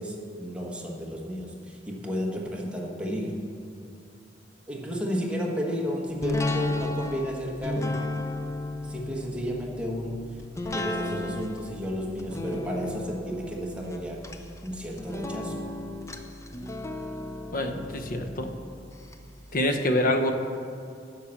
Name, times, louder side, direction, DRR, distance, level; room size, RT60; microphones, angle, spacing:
voice 1, 0.0-3.5 4.7-8.1 8.8-10.4 10.7-14.2 14.6-15.6, equal, 5° right, -2 dB, 1.3 m, -32 dB
sound 1, 6.2-19.1 19.5-19.6, left 2 dB, 15° left, 0.5 m, -34 dB
voice 2, 17.5-18.5 19.5-20.3, left 1 dB, 50° left, 6 dB, 0.8 m, -26 dB
10.5 x 5.8 x 7.1 m, 2.5 s
head